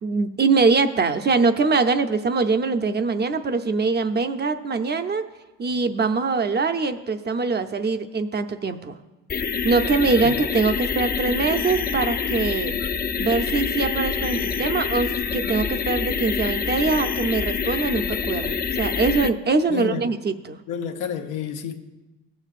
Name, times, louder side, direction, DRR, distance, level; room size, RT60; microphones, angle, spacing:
voice 1, 0.0-5.2 5.6-9.0 9.6-12.7 13.2-20.6, right 4 dB, 35° right, 0.6 m, -23 dB
sound 1, 9.3-19.3, left 6 dB, 30° left, 0.5 m, -26 dB
voice 2, 19.7-20.1 20.7-21.8, left 7 dB, 90° left, 0.8 m, -30 dB
16.0 x 7.2 x 2.5 m
supercardioid pair, 70°, 31 cm